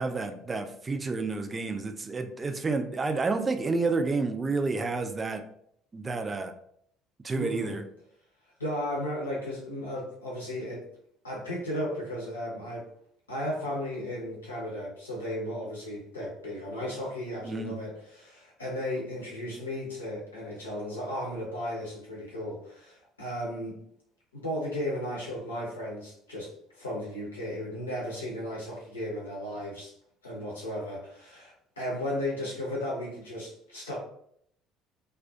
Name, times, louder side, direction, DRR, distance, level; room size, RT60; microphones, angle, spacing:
voice 1, 0.0-5.4 5.9-6.5 7.2-7.8 17.4-17.8, right 3 dB, 25° right, 7 dB, 0.3 m, -30 dB
voice 2, 7.3-7.8 8.6-10.8 11.2-12.9 13.3-23.8 24.3-29.9 30.2-34.0, left 1 dB, 80° left, -4 dB, 0.7 m, -35 dB
2.4 x 2.2 x 2.6 m, 0.68 s
figure-of-eight pair, 55°, 0 cm